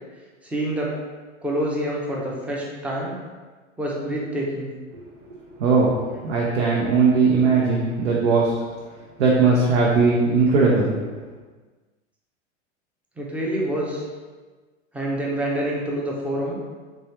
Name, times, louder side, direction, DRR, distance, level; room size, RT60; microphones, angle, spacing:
voice 1, 0.4-0.9 1.4-3.2 3.8-4.7 13.2-14.0 14.9-16.6, right 1 dB, 5° right, -3 dB, 0.5 m, -27 dB
voice 2, 5.3-5.9 6.2-8.5 9.2-10.9, right 4 dB, 60° right, -4 dB, 0.8 m, -19 dB
3.5 x 3.1 x 2.9 m, 1.4 s
hypercardioid pair, 95°, 37 cm